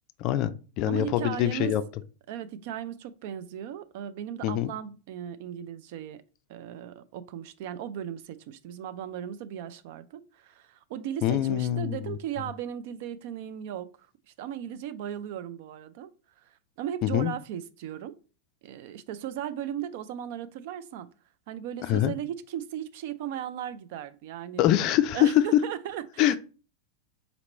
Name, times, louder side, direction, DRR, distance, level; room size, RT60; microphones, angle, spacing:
voice 1, 0.2-0.5 0.8-1.8 4.4-4.7 11.2-12.2 17.0-17.3 21.9-22.1 24.6-25.3 26.2-26.4, left 12 dB, 40° left, 0.3 m, -24 dB
voice 2, 0.9-1.8 2.3-6.2 6.5-18.2 18.6-21.1 21.5-24.7 25.1-26.4, right 10 dB, 50° right, 0.4 m, -37 dB
4.0 x 2.9 x 4.3 m
figure-of-eight pair, 90°, 0 cm